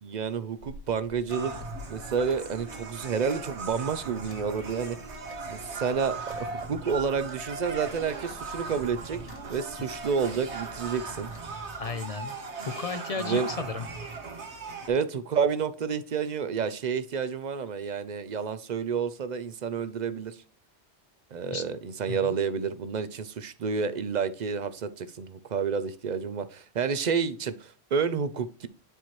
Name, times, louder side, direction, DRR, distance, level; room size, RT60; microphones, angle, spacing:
voice 1, 0.0-1.5 1.9-5.0 5.5-9.2 9.5-11.3 13.2-13.5 14.9-20.4 21.3-28.7, right 6 dB, 50° right, 0.6 m, -30 dB
sound 1, 0.6-11.5, left 3 dB, 80° left, 1.6 m, -49 dB
sound 2, 1.3-14.9, right 4 dB, 70° right, 1.5 m, -38 dB
voice 2, 11.8-12.4 12.6-13.9 21.5-21.6 22.1-22.3, left 4 dB, 50° left, 0.4 m, -33 dB
10.0 x 4.3 x 3.1 m
omnidirectional pair, 1.2 m